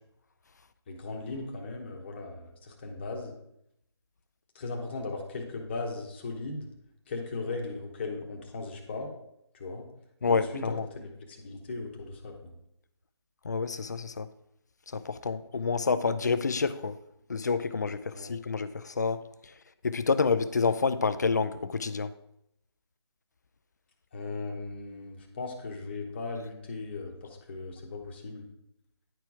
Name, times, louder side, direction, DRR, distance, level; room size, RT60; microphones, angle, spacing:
voice 1, 0.9-3.3 4.5-6.7 7.1-9.1 9.5-9.9 10.3-12.5 18.1-18.3 24.1-28.5, left 3 dB, 25° left, 1.1 m, -38 dB
voice 2, 10.2-10.9 13.4-14.3 14.9-17.0 17.3-19.2 19.8-22.1, left 4 dB, 40° left, 0.4 m, -28 dB
10.0 x 4.5 x 4.8 m
figure-of-eight pair, 165°, 14 cm